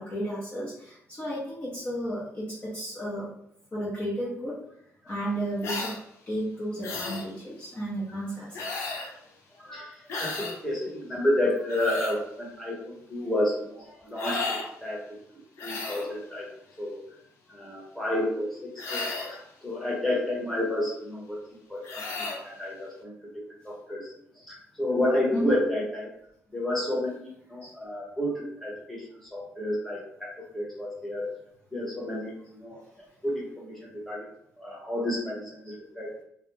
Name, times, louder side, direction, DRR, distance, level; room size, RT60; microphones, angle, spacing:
voice 1, 0.0-3.3 3.7-4.6 5.1-5.9 6.3-8.9 25.3-25.6 27.6-27.7 35.7-35.8, equal, 25° left, -6 dB, 0.7 m, -33 dB
sound 1, 5.6-6.0 6.8-7.3 8.5-9.1 10.1-10.6 11.5-12.2 14.2-14.7 15.6-16.1 18.8-19.4 21.8-22.4, left 3 dB, 60° left, 0.5 m, -34 dB
voice 2, 9.6-15.2 15.6-16.5 16.8-17.0 17.5-21.4 21.7-26.1 26.5-31.3 31.7-32.8 33.2-34.3 34.6-36.1, left 1 dB, 5° left, -4 dB, 1.0 m, -31 dB
2.3 x 2.1 x 3.2 m, 0.72 s
cardioid pair, 95°, 5 cm